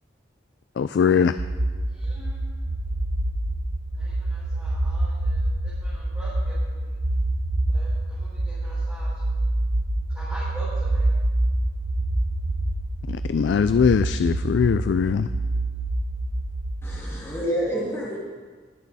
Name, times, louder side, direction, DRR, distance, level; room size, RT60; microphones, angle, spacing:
voice 1, 0.8-1.3 13.1-15.3, left 6 dB, 70° left, 12 dB, 0.3 m, -21 dB
sound 1, 1.4-17.4, right 1 dB, 85° right, 1.1 m, -26 dB
voice 2, 1.9-2.4 3.9-6.9 7.7-9.4 10.1-11.1 17.6-18.2, right 1 dB, 10° right, -12 dB, 4.2 m, -43 dB
voice 3, 16.8-18.2, equal, 15° left, -5 dB, 2.2 m, -28 dB
21.0 x 8.4 x 4.1 m, 1.5 s
head